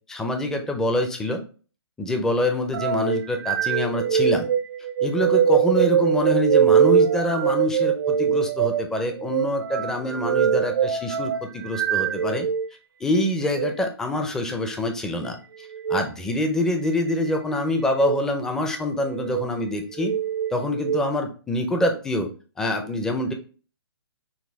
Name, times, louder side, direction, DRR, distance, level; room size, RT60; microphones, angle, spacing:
voice 1, 0.1-1.4 2.0-4.5 5.0-12.5 13.0-20.1 20.5-22.3 22.6-23.3, left 1 dB, 5° left, 5 dB, 0.4 m, -25 dB
sound 1, 2.7-12.7 13.4-13.7 15.7-16.0 16.8-17.4 17.9-18.2 19.0-19.5 20.0-21.0, right 8 dB, 55° right, 0.5 m, -22 dB
6.3 x 2.3 x 3.3 m, 0.37 s
hypercardioid pair, 150°, 13 cm